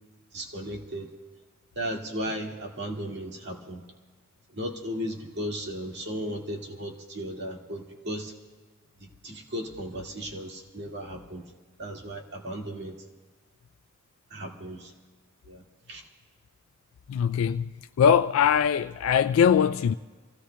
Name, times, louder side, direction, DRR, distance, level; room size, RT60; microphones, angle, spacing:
voice 1, 0.3-1.1 1.8-3.8 4.5-8.3 9.0-11.5 11.8-13.0 14.3-14.9 15.4-16.0, equal, 55° right, 1.9 m, -35 dB
voice 2, 17.1-17.7 18.0-19.9, left 7 dB, 75° left, 0.3 m, -21 dB
28.5 x 16.5 x 2.2 m
head